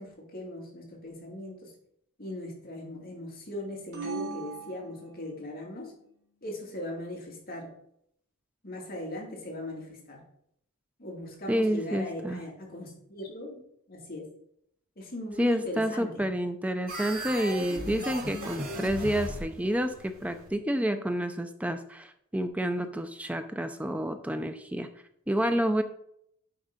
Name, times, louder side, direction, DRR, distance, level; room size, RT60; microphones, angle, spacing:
voice 1, 0.0-1.7 2.2-5.9 6.4-7.7 8.6-10.2 11.0-13.6 13.9-14.3 15.0-16.3, left 1 dB, 45° left, -1 dB, 2.2 m, -39 dB
sound 1, 3.9-5.6, right 4 dB, 85° right, 2.8 m, -39 dB
voice 2, 11.5-12.4 15.4-24.9 25.3-25.8, equal, 5° right, 8 dB, 0.4 m, -29 dB
sound 2, 16.9-20.5, equal, 40° right, 2.9 m, -37 dB
8.9 x 3.8 x 5.1 m, 0.71 s
head